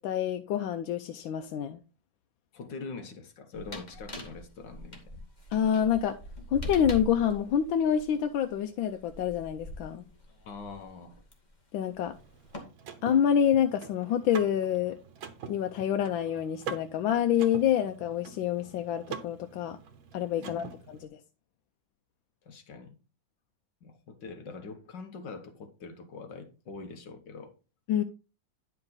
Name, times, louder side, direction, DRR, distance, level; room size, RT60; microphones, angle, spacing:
voice 1, 0.0-1.8 5.5-6.2 6.5-10.0 11.7-12.2 13.0-15.0 15.5-19.8 20.1-21.0 27.9-28.0, left 9 dB, 85° left, 1.4 m, -27 dB
voice 2, 2.5-5.3 10.4-11.2 20.4-20.7 22.4-23.0 23.8-27.5, left 4 dB, 65° left, 1.7 m, -44 dB
sound 1, 3.6-11.3 12.1-12.6, left 2 dB, 25° left, 1.8 m, -42 dB
Car / Mechanisms, 12.1-21.1, right 6 dB, 80° right, 1.8 m, -45 dB
10.5 x 5.4 x 3.9 m
omnidirectional pair, 2.1 m